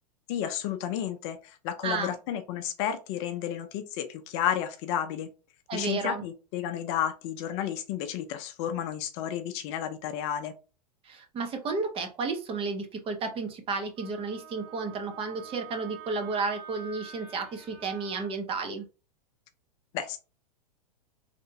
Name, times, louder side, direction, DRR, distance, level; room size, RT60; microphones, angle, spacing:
voice 1, 0.3-5.3 5.7-10.5 19.9-20.2, left 10 dB, 45° left, 8 dB, 0.6 m, -32 dB
voice 2, 1.8-2.1 5.7-6.2 11.1-18.8, right 4 dB, 25° right, 5 dB, 0.8 m, -32 dB
Wind instrument woodwind instrument, 14.0-18.4, right 7 dB, 40° right, 1.1 m, -47 dB
3.3 x 2.7 x 2.7 m, 0.32 s
hypercardioid pair, 110°, 21 cm